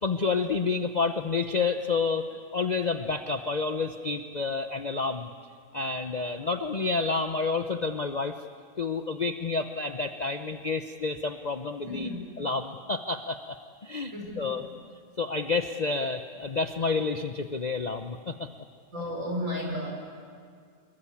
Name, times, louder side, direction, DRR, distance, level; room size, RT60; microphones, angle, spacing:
voice 1, 0.0-2.2 2.5-5.3 5.7-8.4 8.8-12.1 12.4-14.6 15.2-18.5, left 4 dB, 40° left, 7 dB, 0.6 m, -29 dB
voice 2, 11.8-12.2 14.1-14.6 18.9-19.9, left 1 dB, 50° right, 0 dB, 6.2 m, -33 dB
26.0 x 23.0 x 8.7 m, 2.1 s
omnidirectional pair, 1.7 m